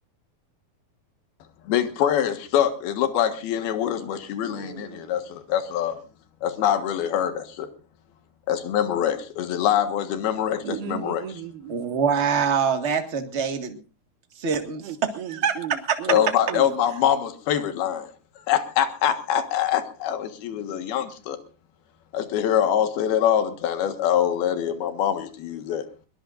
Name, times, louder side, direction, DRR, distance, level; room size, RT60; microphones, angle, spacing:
voice 1, 1.7-6.0 6.4-7.7 8.5-11.2 16.1-18.1 18.5-21.4 22.1-25.8, left 10 dB, 80° left, 3.4 m, -24 dB
voice 2, 4.5-5.1 10.6-11.8 14.8-16.7, right 9 dB, 80° right, 3.4 m, -36 dB
voice 3, 11.7-13.8 14.4-14.9 15.3-15.5 15.9-16.0, right 6 dB, 40° right, 0.9 m, -24 dB
22.0 x 22.0 x 2.6 m
omnidirectional pair, 4.4 m